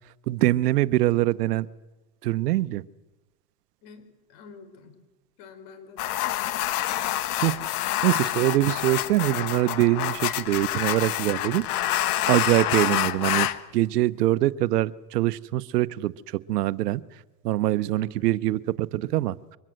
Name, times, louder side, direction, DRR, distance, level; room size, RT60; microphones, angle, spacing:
voice 1, 0.3-1.7 2.2-2.8 7.4-7.5 8.0-11.6 12.3-13.5 13.7-17.0 17.4-19.3, right 16 dB, 85° right, 17 dB, 0.9 m, -23 dB
voice 2, 3.8-5.0 5.4-6.9 18.0-18.3, left 4 dB, 55° left, 9 dB, 4.9 m, -48 dB
sound 1, 6.0-13.6, left 14 dB, 70° left, 1.4 m, -27 dB
23.5 x 20.0 x 7.8 m, 1.1 s
supercardioid pair, 120°, 46 cm